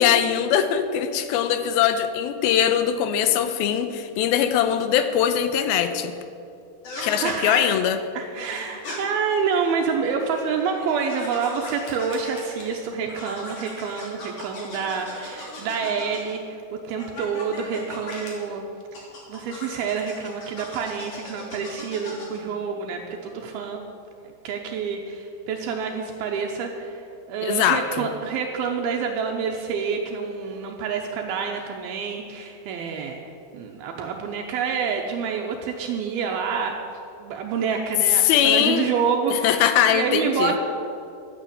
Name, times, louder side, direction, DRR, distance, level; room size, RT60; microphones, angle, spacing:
voice 1, 0.0-6.1 7.0-8.0 27.4-28.1 38.2-38.9 39.3-40.5, left 9 dB, 80° left, 10 dB, 2.5 m, -21 dB
sound 1, 6.8-7.4 8.4-9.0 10.0-12.8 13.1-16.4 17.0-18.3 18.9-22.4, left 1 dB, 50° left, 4.4 m, -38 dB
voice 2, 7.2-7.8 8.1-16.6 16.9-18.6 19.3-23.8 24.4-33.2 33.5-36.8 37.2-40.6, right 6 dB, 80° right, 1 dB, 2.7 m, -27 dB
12.5 x 9.2 x 8.6 m, 2.6 s
omnidirectional pair, 4.5 m